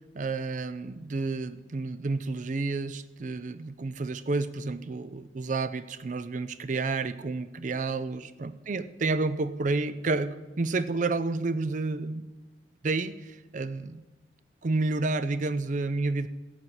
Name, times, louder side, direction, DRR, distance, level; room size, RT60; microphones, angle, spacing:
voice 1, 0.1-12.3 12.8-14.0 14.6-16.3, right 3 dB, 45° right, 14 dB, 0.4 m, -30 dB
16.0 x 7.3 x 4.7 m, 1.2 s
head